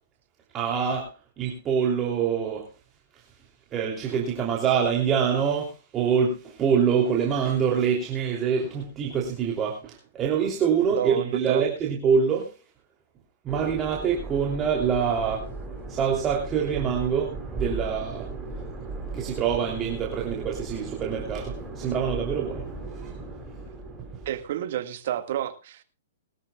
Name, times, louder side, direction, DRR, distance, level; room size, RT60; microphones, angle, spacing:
voice 1, 0.5-2.7 3.7-12.5 13.4-15.5 15.9-18.3 19.1-22.6 22.9-23.1, right 7 dB, 25° right, -1 dB, 3.2 m, -25 dB
voice 2, 10.9-11.6 24.3-25.8, right 11 dB, 55° right, 9 dB, 1.9 m, -30 dB
sound 1, 13.5-24.4, right 2 dB, 10° right, 3.8 m, -37 dB
21.5 x 13.0 x 2.4 m, 0.28 s
hypercardioid pair, 125°, 0 cm